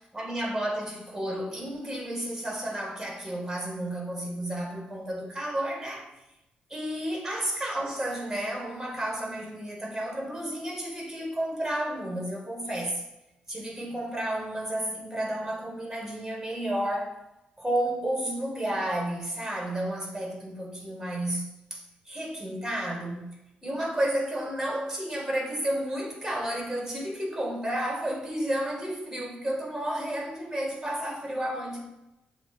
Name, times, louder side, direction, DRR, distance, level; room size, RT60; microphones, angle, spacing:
voice 1, 0.1-6.1 6.7-13.0 13.5-17.2 17.6-23.3 23.6-31.8, right 1 dB, 10° right, 2.2 m, -32 dB
6.9 x 3.1 x 4.5 m
hypercardioid pair, 40°, 4 cm